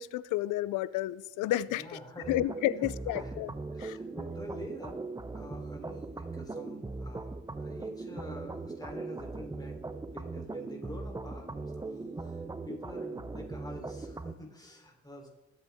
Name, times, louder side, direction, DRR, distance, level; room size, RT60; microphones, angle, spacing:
voice 1, 0.0-1.8 2.3-3.5 3.8-4.0, left 14 dB, 90° left, 0.5 m, -31 dB
voice 2, 1.7-5.1 5.3-9.8 10.1-15.3, left 1 dB, 15° left, 3.3 m, -47 dB
sound 1, 2.2-14.3, right 3 dB, 15° right, 0.6 m, -40 dB
20.5 x 8.2 x 3.5 m
cardioid pair, 90°, 30 cm